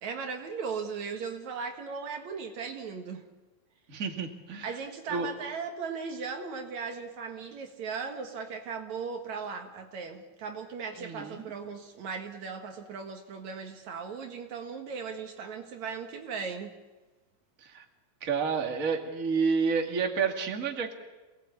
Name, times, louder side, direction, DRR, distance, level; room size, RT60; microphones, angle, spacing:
voice 1, 0.0-3.2 4.6-16.7, right 5 dB, 65° right, 4 dB, 2.8 m, -37 dB
voice 2, 3.9-4.8 5.1-5.3 11.0-11.4 17.6-17.9 18.2-20.9, right 5 dB, 30° right, 3 dB, 2.2 m, -30 dB
27.5 x 18.5 x 8.6 m, 1.2 s
omnidirectional pair, 3.7 m